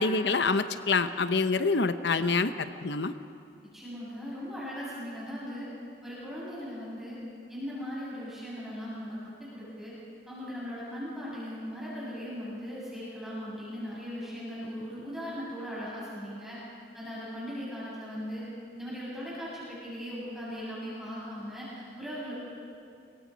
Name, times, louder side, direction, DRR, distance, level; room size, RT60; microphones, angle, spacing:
voice 1, 0.0-3.1, left 4 dB, 80° left, 11 dB, 0.9 m, -26 dB
voice 2, 3.7-5.7 6.0-7.2 7.5-9.9 10.3-16.6 16.9-18.4 18.7-22.3, equal, ahead, -9 dB, 7.3 m, -38 dB
25.5 x 23.0 x 5.2 m, 2.4 s
head